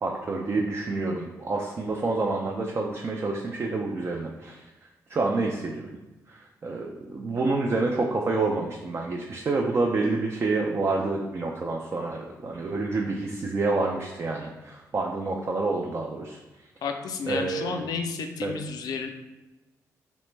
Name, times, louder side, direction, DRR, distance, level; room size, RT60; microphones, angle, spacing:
voice 1, 0.0-4.7 5.1-5.9 6.3-16.4 17.3-17.8 18.4-18.5, right 3 dB, 40° right, 1 dB, 0.3 m, -28 dB
voice 2, 16.8-19.1, left 5 dB, 75° left, 5 dB, 0.4 m, -31 dB
3.2 x 2.1 x 3.1 m, 1.1 s
cardioid pair, 65°, 7 cm